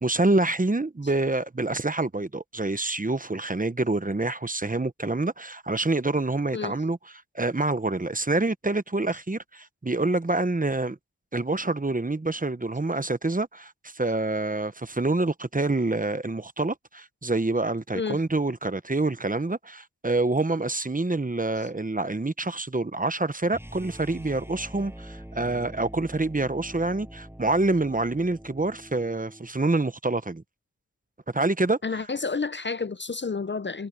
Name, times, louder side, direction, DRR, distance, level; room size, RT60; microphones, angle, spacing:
voice 1, 0.0-11.0 11.3-30.4 31.3-32.1, right 2 dB, 30° right, 0.9 m, -27 dB
sound 1, 23.5-29.5, equal, 10° right, 7.5 m, -44 dB
voice 2, 31.8-33.9, left 4 dB, 40° left, 0.5 m, -30 dB
wide cardioid pair, 60°, 29 cm